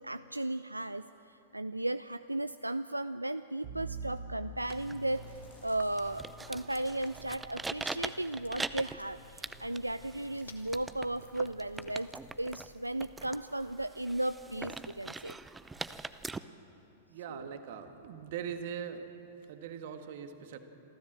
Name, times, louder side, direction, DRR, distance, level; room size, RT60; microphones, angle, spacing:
voice 1, 0.0-5.2 5.6-12.1 12.4-15.4 17.3-17.5, right 1 dB, 85° right, 13 dB, 0.3 m, -35 dB
Bowed string instrument, 3.6-8.7, right 3 dB, 35° right, 2.5 m, -47 dB
Chewing mastication, 4.1-12.3, left 3 dB, 75° left, 1.8 m, -58 dB
sound 1, 4.6-16.4, right 3 dB, 10° right, 0.6 m, -43 dB
voice 2, 17.1-19.1 19.5-20.6, right 8 dB, 50° right, 7 dB, 1.7 m, -41 dB
27.0 x 13.5 x 7.6 m, 3.0 s
figure-of-eight pair, 100°, 0 cm